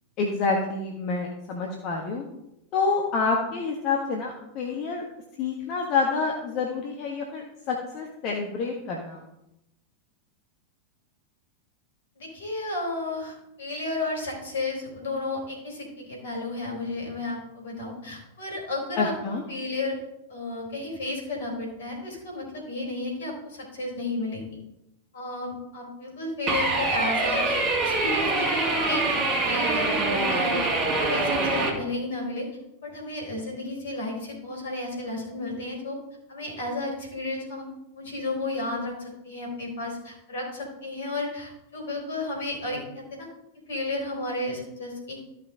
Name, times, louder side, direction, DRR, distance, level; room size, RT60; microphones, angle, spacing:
voice 1, 0.2-2.2 2.7-5.0 5.4-9.2 19.0-19.4, left 4 dB, 40° left, 0 dB, 1.4 m, -28 dB
voice 2, 12.2-19.1 19.5-20.0 20.3-24.4 25.1-27.6 27.8-30.6 30.9-32.5 32.8-36.0 36.3-37.7 37.9-43.3 43.7-45.2, left 2 dB, 65° left, 0 dB, 4.0 m, -32 dB
sound 1, 26.5-31.7, right 2 dB, 25° right, 2.3 m, -24 dB
14.0 x 5.9 x 3.7 m, 0.87 s
figure-of-eight pair, 90°, 0 cm